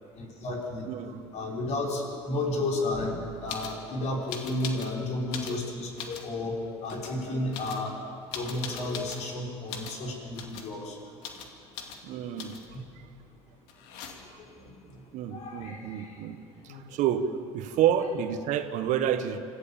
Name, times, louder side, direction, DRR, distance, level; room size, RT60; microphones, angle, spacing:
voice 1, 0.2-0.8 1.3-3.2 3.4-8.0 8.3-11.0 15.3-16.1, left 2 dB, 55° left, -1 dB, 5.3 m, -32 dB
voice 2, 0.9-1.2 12.0-12.6 15.1-16.4 16.6-17.3 17.5-19.4, right 9 dB, 60° right, 9 dB, 1.5 m, -28 dB
sound 1, 3.5-3.8 4.3-4.9 5.2-6.3 6.8-7.1 7.5-9.3 9.7-10.0 10.3-10.7 11.2-11.5 11.7-12.0 12.4-12.8 13.7-14.4 16.2-16.3 16.5-17.1, left 7 dB, 70° left, 2.4 m, -41 dB
26.5 x 15.0 x 7.2 m, 2.5 s
hypercardioid pair, 70°, 14 cm